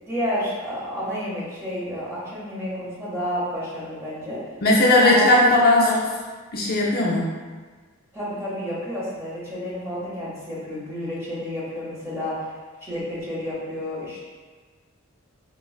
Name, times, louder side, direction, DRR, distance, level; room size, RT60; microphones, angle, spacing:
voice 1, 0.1-4.4 5.0-5.5 5.8-6.0 8.1-12.5 12.8-14.2, equal, 15° right, -8 dB, 0.9 m, -30 dB
voice 2, 4.6-5.8 6.5-7.3, left 2 dB, 45° left, -4 dB, 0.5 m, -17 dB
4.4 x 2.2 x 2.3 m, 1.4 s
head